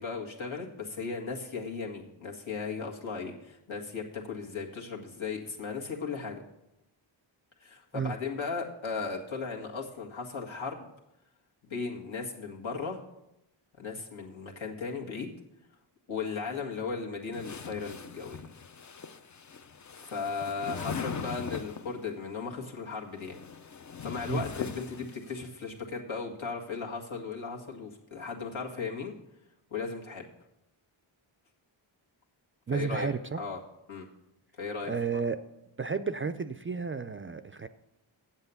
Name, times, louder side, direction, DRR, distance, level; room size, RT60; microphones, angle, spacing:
voice 1, 0.0-6.4 7.6-10.9 11.6-13.0 13.8-15.3 16.1-18.5 19.9-23.4 24.0-29.1 29.7-30.3 32.7-33.1 33.4-33.6 33.9-34.1 34.6-34.9, left 5 dB, 70° left, -1 dB, 1.8 m, -36 dB
sound 1, 17.3-22.0 23.0-25.5, left 6 dB, 40° left, 0.6 m, -41 dB
voice 2, 32.7-33.4 34.8-35.4 35.8-37.7, right 5 dB, 30° right, 10 dB, 0.4 m, -32 dB
8.1 x 7.4 x 6.9 m, 0.86 s
wide cardioid pair, 70°, 48 cm